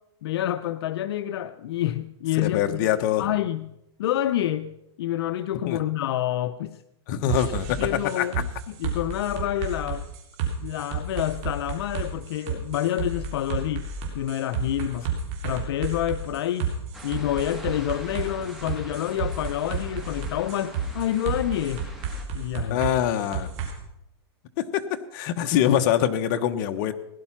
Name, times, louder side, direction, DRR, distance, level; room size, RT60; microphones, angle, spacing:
voice 1, 0.2-2.9 3.2-3.7 4.0-6.8 7.7-10.1 10.6-13.9 14.1-15.1 15.4-16.7 17.0-21.9 22.3-22.8, left 12 dB, 65° left, 0.6 m, -28 dB
voice 2, 2.4-3.2 5.7-5.8 7.1-8.3 22.7-23.5 24.6-26.9, left 10 dB, 45° left, 1.1 m, -24 dB
sound 1, 7.3-23.7, right 5 dB, 40° right, 3.4 m, -32 dB
sound 2, 16.9-22.3, equal, ahead, 2.0 m, -44 dB
17.5 x 11.0 x 5.9 m
supercardioid pair, 150°, 14 cm